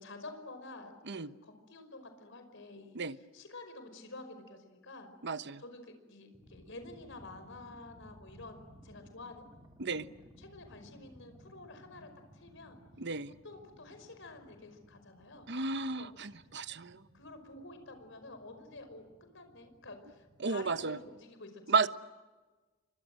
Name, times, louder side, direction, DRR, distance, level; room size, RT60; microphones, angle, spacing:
voice 1, 0.0-3.0 3.3-5.1 5.6-5.8 6.1-9.5 10.0-10.1 10.4-12.8 13.4-15.5 16.0-16.1 17.1-21.9, left 2 dB, 65° left, 8 dB, 5.3 m, -50 dB
voice 2, 5.2-5.6 9.8-10.1 13.0-13.3 15.5-17.0 20.4-21.0 21.7-21.9, right 4 dB, 60° right, 12 dB, 1.2 m, -33 dB
sound 1, 6.3-21.2, equal, 15° right, 3.4 m, -58 dB
29.5 x 25.0 x 7.8 m, 1.3 s
head